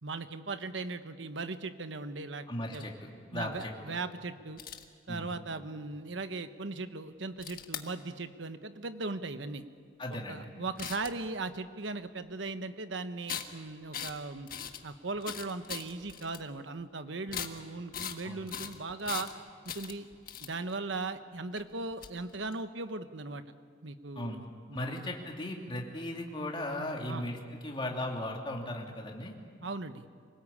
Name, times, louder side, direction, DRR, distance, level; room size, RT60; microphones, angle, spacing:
voice 1, 0.0-2.4 2.7-2.9 3.3-4.6 5.1-9.6 10.3-14.5 14.8-19.3 19.6-20.1 20.4-23.4 23.8-25.0 27.1-27.2 29.6-30.1, right 3 dB, 70° right, 10 dB, 1.1 m, -38 dB
voice 2, 2.5-4.0 5.1-5.3 10.0-10.5 18.2-18.5 24.2-24.4 24.7-29.3, left 1 dB, 25° left, 0 dB, 2.7 m, -37 dB
sound 1, 4.6-4.8 7.4-7.8 10.8-11.3 13.3-13.5 13.9-14.2 14.5-14.8 15.2-16.4 17.3-17.6 17.9-18.2 18.5-19.3 19.7-20.7 21.6-21.7 21.9-22.5, left 8 dB, 45° left, 1.5 m, -39 dB
26.0 x 19.0 x 8.6 m, 2.1 s
head